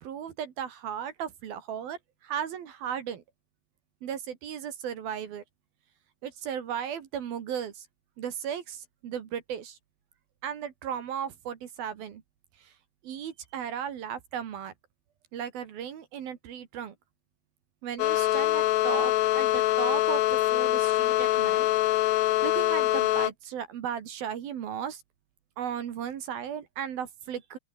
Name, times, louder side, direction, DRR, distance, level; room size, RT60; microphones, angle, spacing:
voice 1, 0.0-3.2 4.0-5.4 6.2-7.9 8.2-9.8 10.4-12.2 12.6-12.7 13.0-14.7 15.3-17.0 17.8-21.7 22.0-25.0 25.6-27.6, right 8 dB, 60° right, 3.5 m, -36 dB
sound 1, 18.0-23.3, left 16 dB, 70° left, 2.9 m, -24 dB
open air
omnidirectional pair, 5.4 m